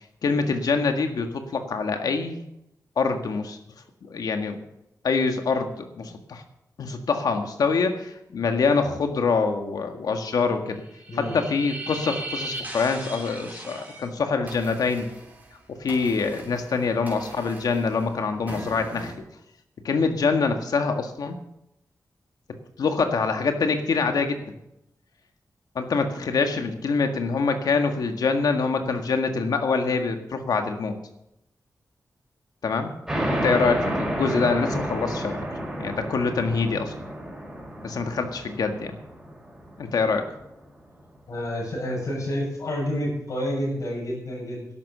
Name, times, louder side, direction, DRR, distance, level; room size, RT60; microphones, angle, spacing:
voice 1, 0.2-2.4 2.9-3.6 4.0-4.6 5.0-6.4 6.8-10.8 11.2-15.1 15.7-19.1 19.8-21.4 22.8-24.5 25.7-31.0 32.6-32.9 33.3-35.4 35.8-36.9 37.8-39.0 39.8-40.3, left 4 dB, 80° left, 6 dB, 1.7 m, -25 dB
sound 1, 10.8-14.1 14.5-19.2, right 2 dB, 25° right, 3.2 m, -39 dB
sound 2, 33.1-40.2, right 1 dB, 10° right, 4.6 m, -30 dB
voice 2, 41.3-44.7, equal, 65° left, -3 dB, 7.2 m, -29 dB
12.0 x 11.0 x 6.8 m, 0.84 s
wide cardioid pair, 165°, 7 cm